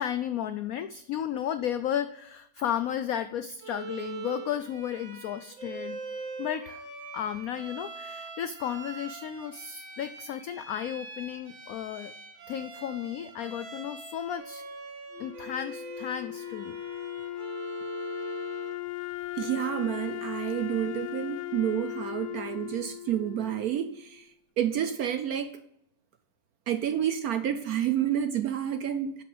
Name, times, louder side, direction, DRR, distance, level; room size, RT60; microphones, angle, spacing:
voice 1, 0.0-6.0 6.4-6.8 7.1-12.1 12.5-14.6 15.2-16.8, left 10 dB, 85° left, 11 dB, 0.7 m, -33 dB
Bowed string instrument, 3.6-18.8, right 4 dB, 85° right, 2.7 m, -42 dB
Wind instrument woodwind instrument, 15.1-24.2, left 14 dB, 70° left, 1.1 m, -38 dB
voice 2, 19.3-24.3 24.6-25.6 26.7-29.2, right 10 dB, 70° right, 10 dB, 0.9 m, -29 dB
11.0 x 5.8 x 5.5 m, 0.76 s
omnidirectional pair, 2.1 m